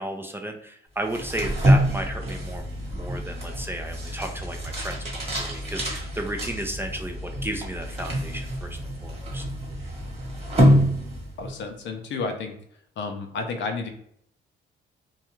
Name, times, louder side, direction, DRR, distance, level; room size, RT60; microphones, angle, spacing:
voice 1, 0.0-9.4, right 1 dB, 10° right, 3 dB, 0.4 m, -34 dB
sound 1, 1.0-11.6, equal, 30° right, 1.1 m, -26 dB
voice 2, 11.4-12.5 13.0-13.9, left 4 dB, 70° left, 5 dB, 0.5 m, -31 dB
2.3 x 2.3 x 2.9 m, 0.67 s
cardioid pair, 90°, 20 cm